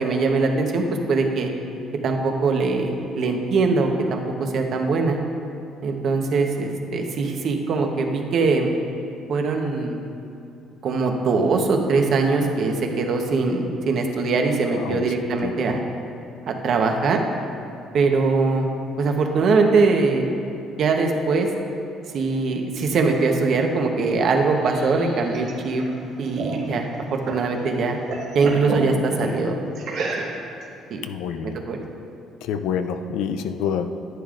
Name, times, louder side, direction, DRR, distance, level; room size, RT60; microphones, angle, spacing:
voice 1, 0.0-1.5 2.0-5.2 5.8-8.7 9.3-10.0 10.8-15.8 16.5-17.2 17.9-18.7 19.0-20.3 20.8-21.5 22.1-25.8 26.2-28.0 28.3-29.6 30.0-30.3 30.9-31.0 31.4-31.8, right 4 dB, 50° right, 3 dB, 1.0 m, -22 dB
sound 1, 24.4-27.5 27.8-28.9 29.8-30.6, right 3 dB, 70° right, 1.8 m, -32 dB
voice 2, 31.0-31.6 32.4-33.9, left 7 dB, 80° left, 9 dB, 0.4 m, -27 dB
11.0 x 9.9 x 2.5 m, 2.7 s
cardioid pair, 130°, 0 cm